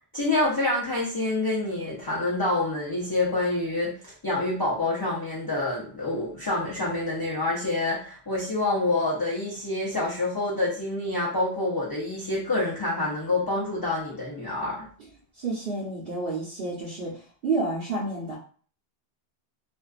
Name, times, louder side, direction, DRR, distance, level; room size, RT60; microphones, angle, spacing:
voice 1, 0.1-14.8, left 2 dB, 30° left, -6 dB, 0.4 m, -27 dB
voice 2, 15.4-18.4, right 3 dB, 60° right, -6 dB, 0.9 m, -30 dB
2.4 x 2.3 x 2.3 m, 0.43 s
omnidirectional pair, 1.1 m